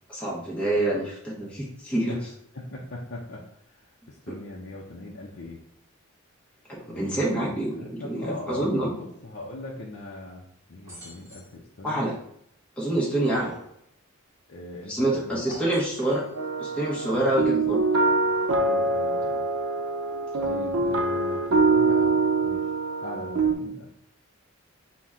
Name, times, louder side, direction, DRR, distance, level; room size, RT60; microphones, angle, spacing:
voice 1, 0.1-2.1 6.7-8.9 11.8-12.1 12.8-13.5 14.9-16.2 16.6-17.8 20.4-20.5, right 1 dB, 5° left, -6 dB, 0.7 m, -26 dB
voice 2, 2.5-5.6 6.8-12.1 14.5-15.6 17.1-17.6 18.5-19.5 20.4-22.7 23.0-23.9, left 2 dB, 50° left, -3 dB, 0.5 m, -40 dB
sound 1, 10.8-11.6 12.9-13.7 15.3-16.3, right 1 dB, 15° right, 1.2 m, -46 dB
sound 2, 16.3-23.5, right 3 dB, 75° right, 0.5 m, -24 dB
5.8 x 2.1 x 3.6 m, 0.71 s
head